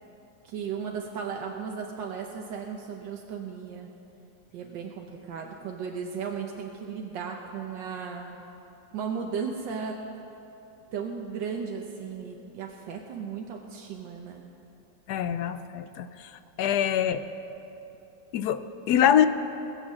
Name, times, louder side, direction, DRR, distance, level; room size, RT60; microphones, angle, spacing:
voice 1, 0.4-3.9 4.5-8.4 8.9-10.0 10.9-14.4, right 6 dB, 85° right, 1 dB, 1.5 m, -35 dB
voice 2, 15.1-16.3 16.6-17.2 18.3-19.3, left 10 dB, 70° left, 12 dB, 1.0 m, -24 dB
19.5 x 7.3 x 7.4 m, 2.8 s
omnidirectional pair, 2.0 m